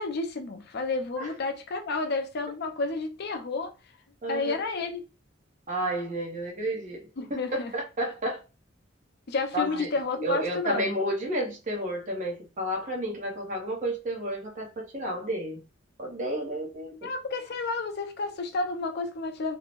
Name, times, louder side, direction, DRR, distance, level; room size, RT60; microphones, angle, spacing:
voice 1, 0.0-3.7 4.3-5.0 7.2-7.7 9.3-10.9 17.0-19.6, left 3 dB, 55° left, 0.5 m, -31 dB
voice 2, 4.2-4.6 5.7-8.4 9.5-9.9 10.2-15.6 16.0-17.1, right 1 dB, 40° right, 0.8 m, -31 dB
2.6 x 2.0 x 3.0 m
head